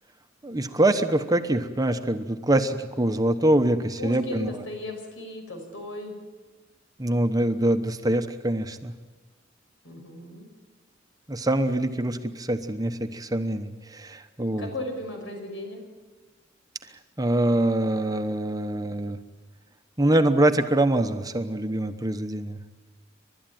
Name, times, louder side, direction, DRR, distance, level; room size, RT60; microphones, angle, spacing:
voice 1, 0.4-4.5 7.0-8.9 11.3-14.7 17.2-19.2 20.0-22.6, right 1 dB, 20° right, 8 dB, 1.0 m, -24 dB
voice 2, 4.0-6.1 9.8-10.5 14.6-15.8, left 1 dB, 80° left, 3 dB, 5.7 m, -36 dB
29.5 x 12.5 x 9.3 m, 1.3 s
head